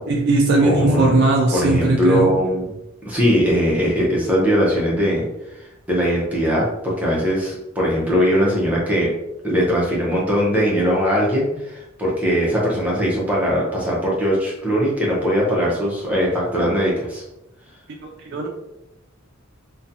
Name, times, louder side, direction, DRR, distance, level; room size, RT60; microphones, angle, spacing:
voice 1, 0.1-2.3 18.0-18.5, right 2 dB, 55° right, 1 dB, 0.3 m, -18 dB
voice 2, 0.6-2.7 3.0-5.3 5.5-5.6 5.9-9.2 9.4-17.2, equal, 5° right, -5 dB, 0.6 m, -20 dB
2.5 x 2.2 x 2.7 m, 0.89 s
head